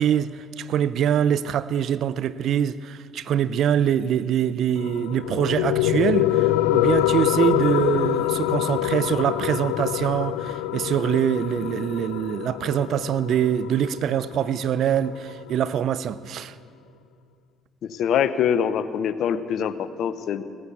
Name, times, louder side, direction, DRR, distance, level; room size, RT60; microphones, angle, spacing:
voice 1, 0.0-16.5, right 9 dB, 65° right, 0.5 m, -24 dB
sound 1, 4.8-15.8, left 15 dB, 85° left, 0.4 m, -25 dB
voice 2, 17.8-20.4, left 8 dB, 65° left, 0.8 m, -24 dB
17.5 x 9.7 x 8.3 m
hypercardioid pair, 60°, 0 cm